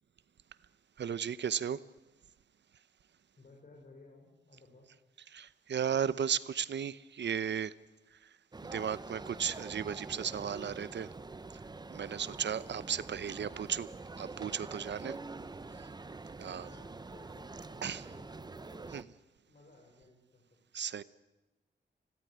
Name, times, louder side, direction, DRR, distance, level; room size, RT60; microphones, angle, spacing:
voice 1, 1.0-1.8 5.3-7.7 8.2-8.3 8.6-11.1 11.9-13.9 14.2-15.2 16.4-16.7 17.8-18.0 18.9-19.0 20.7-21.0, right 8 dB, 75° right, 17 dB, 0.9 m, -35 dB
voice 2, 3.4-4.9 12.1-12.4 15.2-15.7 16.5-19.1 19.5-20.4, left 3 dB, 50° left, 0 dB, 5.6 m, -58 dB
sound 1, 8.5-19.0, right 3 dB, 25° right, 0.9 m, -46 dB
26.0 x 18.0 x 9.6 m, 1.1 s
wide cardioid pair, 145°, 18 cm